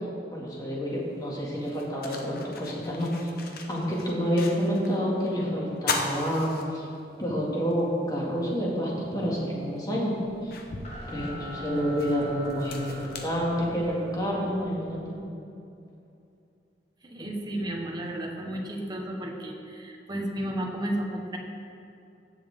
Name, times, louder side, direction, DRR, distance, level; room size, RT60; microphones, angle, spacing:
voice 1, 0.3-3.3 3.7-6.9 7.2-10.1 10.4-10.6 11.1-15.2, equal, 20° left, -5 dB, 2.2 m, -28 dB
sound 1, 1.0-1.1 1.6-5.0 5.3-5.4 5.8-7.2 7.7-7.8 9.2-9.3 9.9-14.1, left 3 dB, 60° left, 1.0 m, -37 dB
sound 2, 10.2-15.2, equal, 40° left, 1.7 m, -43 dB
voice 2, 17.0-21.4, right 1 dB, 25° right, 1 dB, 1.2 m, -33 dB
16.5 x 7.4 x 3.6 m, 2.6 s
head